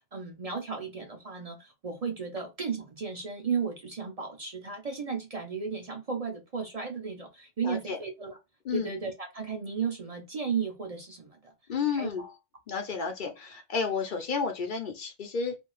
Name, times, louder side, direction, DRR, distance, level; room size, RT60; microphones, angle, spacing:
voice 1, 0.1-8.4 8.7-11.5 11.9-12.3, right 5 dB, 45° right, 0.6 m, -34 dB
voice 2, 7.6-8.0 8.6-8.9 11.7-12.2 12.7-15.6, left 5 dB, 60° left, 0.7 m, -31 dB
2.5 x 2.3 x 3.0 m
omnidirectional pair, 1.0 m